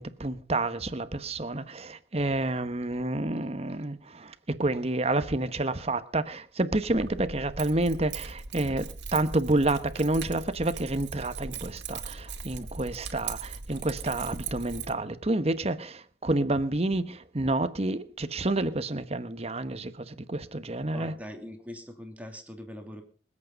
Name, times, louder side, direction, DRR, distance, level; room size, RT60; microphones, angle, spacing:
voice 1, 0.0-21.1, right 2 dB, 35° right, 1.2 m, -29 dB
Keys jangling, 6.9-14.9, right 5 dB, 90° right, 2.3 m, -39 dB
voice 2, 20.9-23.0, left 1 dB, 10° right, 2.7 m, -42 dB
25.5 x 8.7 x 5.3 m
head